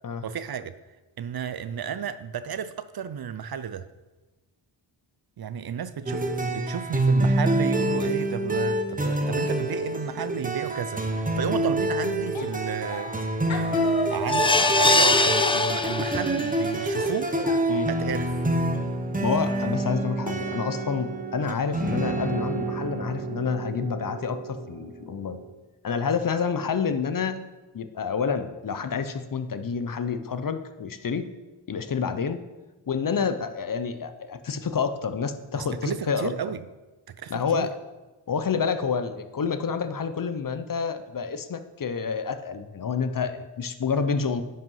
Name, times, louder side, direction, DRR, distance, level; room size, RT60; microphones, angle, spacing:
voice 1, 0.2-0.7 1.2-3.8 5.4-13.1 14.1-17.3 17.9-18.2 35.6-36.6 37.2-37.7, right 8 dB, 55° right, 13 dB, 0.6 m, -32 dB
sound 1, 6.1-25.4, right 1 dB, 15° right, 1.0 m, -27 dB
sound 2, 12.3-12.6 12.9-13.2 13.5-17.6, left 2 dB, 80° left, 1.4 m, -32 dB
sound 3, 14.3-16.5 17.0-17.1 17.4-17.5, left 2 dB, 10° left, 0.4 m, -22 dB
voice 2, 19.2-25.4 25.8-27.4 27.7-31.2 31.7-32.4 32.9-36.3 37.3-37.7 38.3-44.4, left 6 dB, 45° left, 10 dB, 0.8 m, -28 dB
10.5 x 5.6 x 5.6 m, 1.1 s
wide cardioid pair, 95°, 46 cm